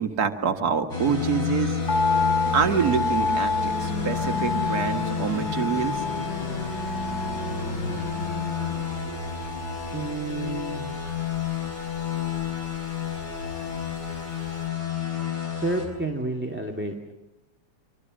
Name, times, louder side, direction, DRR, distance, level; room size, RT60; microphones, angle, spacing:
voice 1, 0.0-1.8 2.5-6.0 9.1-9.2, right 6 dB, 60° right, 5 dB, 2.1 m, -26 dB
sound 1, 0.9-15.9, left 4 dB, 90° left, 5.7 m, -30 dB
sound 2, 1.9-14.2 14.4-14.5, left 4 dB, 15° left, 1.2 m, -30 dB
voice 2, 9.9-10.9 15.5-17.1, right 2 dB, 5° right, 2 dB, 2.2 m, -30 dB
24.0 x 24.0 x 6.4 m, 0.95 s
omnidirectional pair, 1.8 m